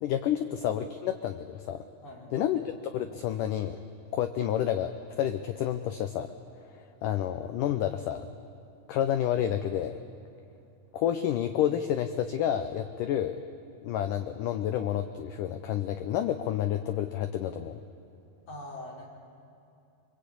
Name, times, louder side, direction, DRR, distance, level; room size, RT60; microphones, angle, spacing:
voice 1, 0.0-1.8 2.3-3.8 4.1-6.3 7.0-8.3 8.9-10.0 10.9-13.4 13.8-17.8, left 10 dB, 85° left, 9 dB, 1.8 m, -29 dB
voice 2, 2.0-2.4 18.5-19.1, left 1 dB, 40° left, -2 dB, 4.8 m, -43 dB
24.0 x 23.5 x 8.6 m, 2.6 s
omnidirectional pair, 4.7 m